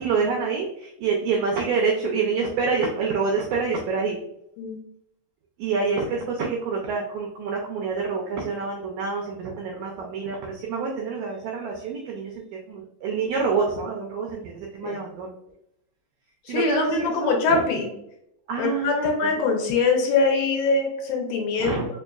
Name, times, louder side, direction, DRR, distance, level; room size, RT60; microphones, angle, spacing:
voice 1, 0.0-4.2 5.6-15.3 16.5-17.6 18.5-19.3 21.6-21.9, right 5 dB, 85° right, -1 dB, 1.6 m, -27 dB
voice 2, 16.5-17.9 18.6-21.8, left 4 dB, 75° left, 1 dB, 2.3 m, -23 dB
5.4 x 2.5 x 2.3 m, 0.77 s
omnidirectional pair, 4.0 m